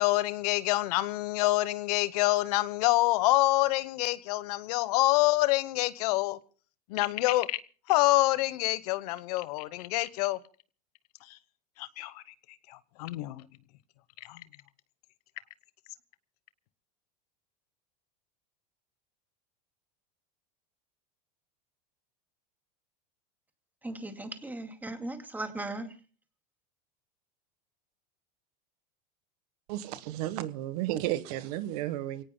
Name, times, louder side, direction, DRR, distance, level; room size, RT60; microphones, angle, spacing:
voice 1, 0.0-6.4 6.9-7.6 7.9-10.4 11.2-11.4 11.8-12.2 12.7-13.4 14.2-14.4, left 18 dB, 70° left, 1.0 m, -27 dB
voice 2, 23.8-25.9, right 2 dB, 10° right, 2.3 m, -37 dB
voice 3, 29.7-32.2, right 14 dB, 70° right, 1.3 m, -33 dB
28.0 x 18.0 x 2.2 m
supercardioid pair, 115°, 21 cm